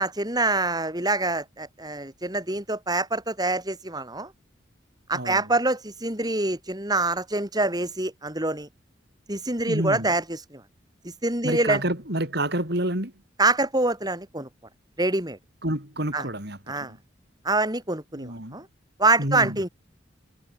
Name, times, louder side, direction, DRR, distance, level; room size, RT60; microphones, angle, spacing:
voice 1, 0.0-4.3 5.1-8.7 9.3-10.6 11.0-11.8 13.4-14.5 15.0-15.4 16.1-16.3 16.7-16.9 17.4-18.7 19.0-19.7, right 2 dB, 20° right, 7.5 m, -25 dB
voice 2, 5.1-5.5 9.6-10.1 11.4-13.1 15.6-17.0 18.1-18.6 19.2-19.6, right 1 dB, 55° right, 6.4 m, -29 dB
head